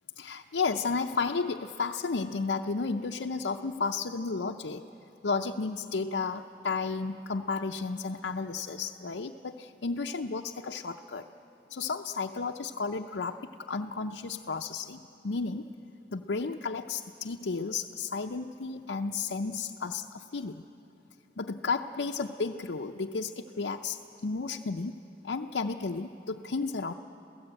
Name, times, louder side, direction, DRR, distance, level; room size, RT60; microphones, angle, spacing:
voice 1, 0.2-4.8 5.2-11.2 11.7-15.7 16.1-20.6 21.4-26.9, left 4 dB, 90° left, 1 dB, 0.6 m, -33 dB
27.5 x 16.5 x 9.0 m, 2.8 s
head